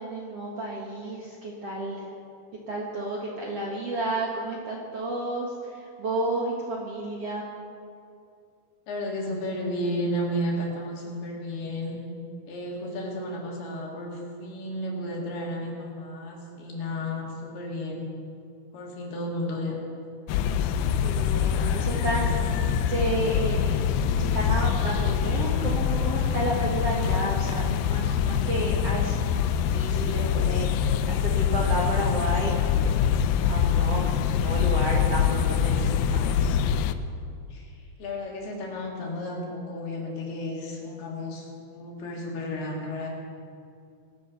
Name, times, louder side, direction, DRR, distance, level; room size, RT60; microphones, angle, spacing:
voice 1, 0.0-2.0 2.7-5.5 6.0-7.4 21.0-22.5 22.9-23.8 24.2-29.2 29.7-32.6 33.5-34.0 34.4-35.8 36.1-36.2, right 1 dB, 50° right, -3 dB, 2.0 m, -31 dB
voice 2, 8.9-12.0 12.5-18.1 18.7-19.8 37.5-43.1, left 1 dB, 70° left, -1 dB, 4.3 m, -33 dB
sound 1, 20.3-36.9, left 8 dB, 85° left, 2.0 m, -24 dB
24.0 x 8.4 x 6.9 m, 2.4 s
omnidirectional pair, 4.9 m